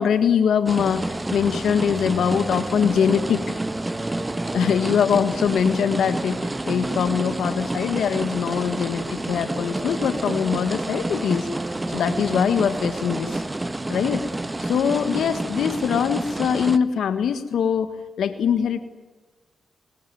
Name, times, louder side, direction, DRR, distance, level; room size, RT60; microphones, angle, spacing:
voice 1, 0.0-3.4 4.5-11.5 11.9-13.4 13.9-14.3 14.6-18.8, left 7 dB, 75° left, 11 dB, 1.6 m, -22 dB
sound 1, 0.7-16.8, right 2 dB, 20° right, 1.6 m, -29 dB
25.0 x 23.0 x 9.3 m, 1.2 s
supercardioid pair, 45°, 0 cm